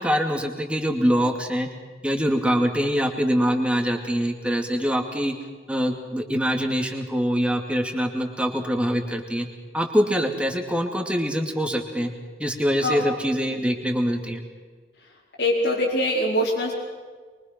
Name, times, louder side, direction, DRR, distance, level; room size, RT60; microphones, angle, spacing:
voice 1, 0.0-1.7 2.0-5.3 5.7-9.5 9.7-12.1 12.4-14.4, equal, 5° right, 3 dB, 2.5 m, -24 dB
voice 2, 15.4-16.7, left 1 dB, 85° left, -6 dB, 4.4 m, -23 dB
24.0 x 24.0 x 6.0 m, 1.5 s
head